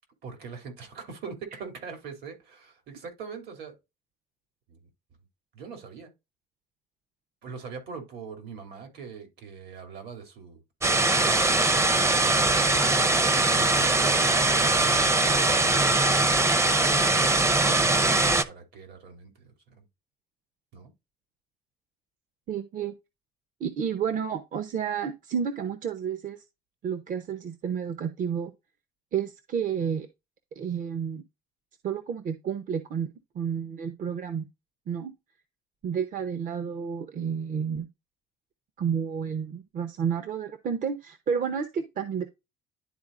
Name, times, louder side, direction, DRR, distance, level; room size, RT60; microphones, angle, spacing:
voice 1, 0.2-3.7 4.7-4.8 5.5-6.1 7.4-10.6 11.1-16.2 16.9-19.9 20.7-20.9, right 5 dB, 75° right, 2.7 m, -43 dB
sound 1, 10.8-18.4, right 2 dB, 15° right, 0.6 m, -22 dB
voice 2, 22.5-22.9 23.6-26.4 26.8-28.5 29.1-30.1 30.6-31.2 31.8-34.4 34.9-35.1 35.8-37.9 38.8-42.3, right 7 dB, 50° right, 0.8 m, -30 dB
11.5 x 4.0 x 2.5 m
cardioid pair, 110°, 17 cm